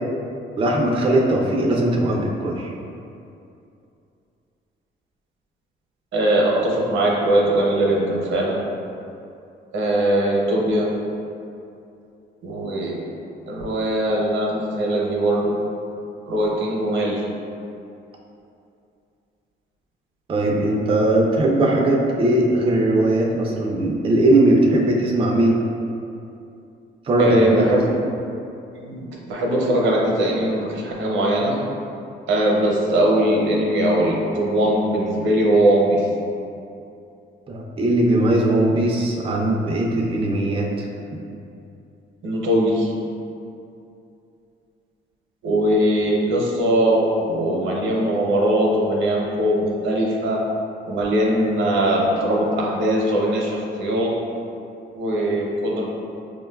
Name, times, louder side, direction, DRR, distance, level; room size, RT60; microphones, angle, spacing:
voice 1, 0.6-2.7 20.3-25.6 27.1-27.8 37.5-40.9, right 1 dB, 25° right, -1 dB, 0.4 m, -19 dB
voice 2, 6.1-8.6 9.7-10.9 12.4-13.0 13.5-15.6 16.3-17.2 27.2-27.9 28.7-31.6 32.3-36.0 42.2-42.9 45.4-50.5 50.9-54.1 54.9-55.8, right 1 dB, 75° right, -2 dB, 0.7 m, -20 dB
4.6 x 2.2 x 2.2 m, 2.6 s
cardioid pair, 90°, 20 cm